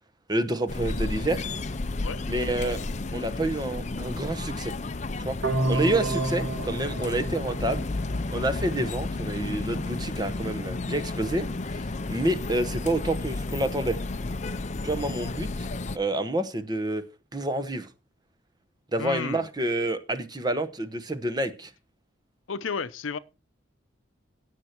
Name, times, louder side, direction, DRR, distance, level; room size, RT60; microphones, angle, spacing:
voice 1, 0.3-1.5 2.3-2.8 3.1-4.7 5.2-5.4 5.7-7.9 8.3-14.0 14.8-15.7 15.9-17.0 17.3-17.9 18.9-21.7, right 1 dB, 20° right, 1.0 m, -28 dB
sound 1, 0.7-16.0, left 2 dB, 35° left, 0.6 m, -32 dB
sound 2, 5.4-8.4, right 2 dB, 80° right, 1.9 m, -30 dB
voice 2, 19.0-19.5 22.5-23.2, left 5 dB, 80° left, 0.7 m, -32 dB
17.0 x 6.7 x 4.5 m
head